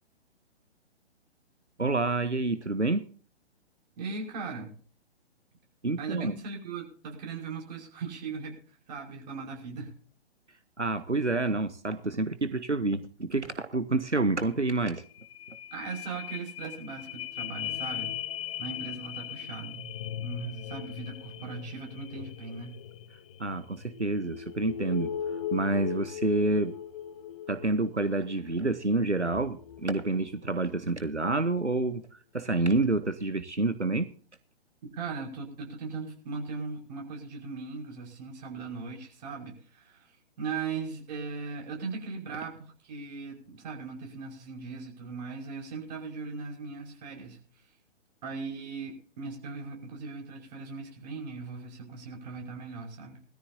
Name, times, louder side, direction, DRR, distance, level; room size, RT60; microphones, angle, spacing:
voice 1, 1.8-3.1 5.8-6.3 10.8-15.0 23.4-25.1 25.5-26.7 27.5-34.1, right 2 dB, 90° right, 11 dB, 1.2 m, -28 dB
voice 2, 4.0-4.7 6.0-9.9 15.7-18.2 18.6-22.8 34.9-40.1 40.4-47.4 48.2-53.2, right 4 dB, 40° right, 1 dB, 5.5 m, -39 dB
sound 1, 14.5-14.6 14.9-30.8 31.3-31.4, left 10 dB, 30° left, 0.9 m, -39 dB
21.0 x 14.0 x 2.8 m, 0.43 s
figure-of-eight pair, 125°, 34 cm